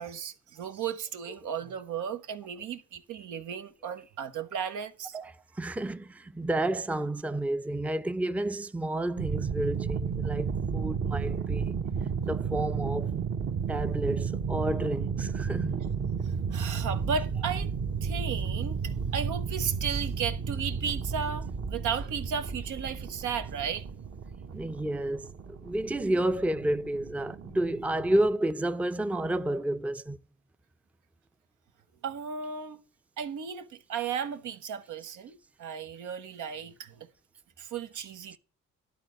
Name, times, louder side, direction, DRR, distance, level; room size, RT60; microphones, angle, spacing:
voice 1, 0.0-5.2 16.5-17.7 18.0-23.8 32.0-32.8 33.2-37.1 37.6-38.4, right 7 dB, 80° right, 1.1 m, -35 dB
voice 2, 5.1-11.7 12.2-13.2 13.7-15.8 24.5-25.3 25.6-30.2, right 1 dB, 5° right, 0.5 m, -30 dB
sound 1, 9.2-28.3, right 6 dB, 45° right, 1.1 m, -33 dB
11.5 x 4.0 x 7.8 m
cardioid pair, 90°, 30 cm